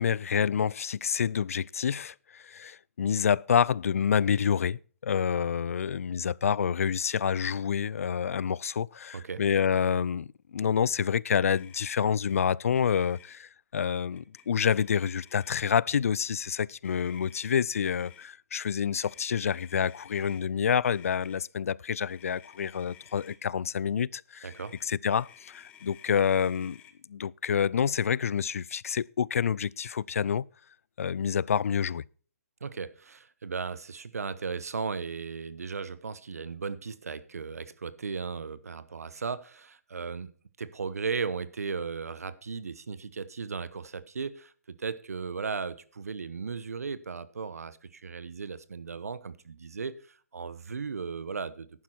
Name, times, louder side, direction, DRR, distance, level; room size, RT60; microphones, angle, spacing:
voice 1, 0.0-10.3 10.5-24.5 24.8-26.8 27.1-30.5 31.0-32.0, left 7 dB, 65° left, 0.4 m, -28 dB
Motor vehicle (road), 11.5-11.9 12.2-12.4 12.7-13.4 14.1-14.5 14.8-15.7 16.8-18.3 19.0-20.4 20.8-21.4 22.1-23.4 24.5-26.9, left 9 dB, 15° left, 1.1 m, -54 dB
voice 2, 24.4-24.8 32.6-40.3 40.6-51.8, right 5 dB, 80° right, 1.0 m, -36 dB
11.0 x 9.5 x 4.4 m
hypercardioid pair, 150°, 8 cm